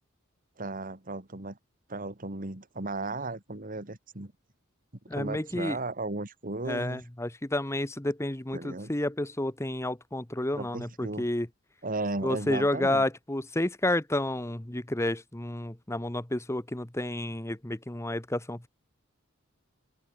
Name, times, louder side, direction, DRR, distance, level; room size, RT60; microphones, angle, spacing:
voice 1, 0.6-1.6 1.9-4.3 5.1-7.0 8.5-8.9 10.5-11.3 11.8-13.0, right 2 dB, 40° right, 2.5 m, -35 dB
voice 2, 5.1-5.8 6.6-11.5 12.2-18.7, left 1 dB, 15° left, 1.1 m, -30 dB
head